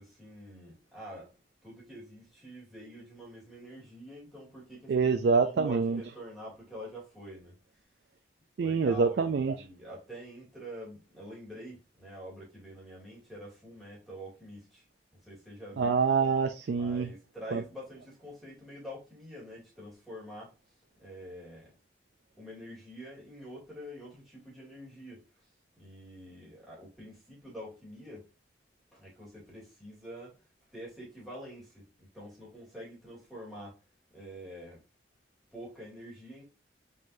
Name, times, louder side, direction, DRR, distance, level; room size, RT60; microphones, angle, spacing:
voice 1, 0.0-1.4 1.6-5.1 5.4-7.6 8.6-14.8 15.2-16.0 16.7-21.7 22.4-25.5 25.8-28.3 28.9-30.4 30.7-33.8 34.1-34.8 35.5-36.4, equal, ahead, 2.4 m, -46 dB
voice 2, 4.9-6.0 8.6-9.5 15.8-17.1 17.5-17.6, right 5 dB, 65° right, 0.3 m, -26 dB
5.1 x 3.8 x 2.6 m
head